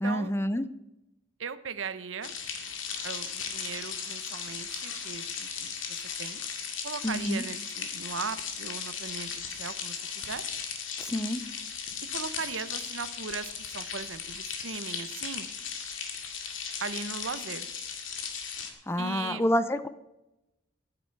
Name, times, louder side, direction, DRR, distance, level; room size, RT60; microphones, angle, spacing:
voice 1, 0.0-0.6 7.0-7.4 11.0-11.4 18.9-19.9, equal, 15° left, 12 dB, 0.6 m, -28 dB
voice 2, 1.4-2.3 3.0-6.4 6.8-10.4 12.1-15.5 16.8-17.7 19.0-19.5, right 5 dB, 80° right, 14 dB, 0.8 m, -38 dB
sound 1, 2.2-18.7, left 6 dB, 90° left, 2.2 m, -37 dB
14.5 x 10.0 x 4.6 m, 0.92 s
head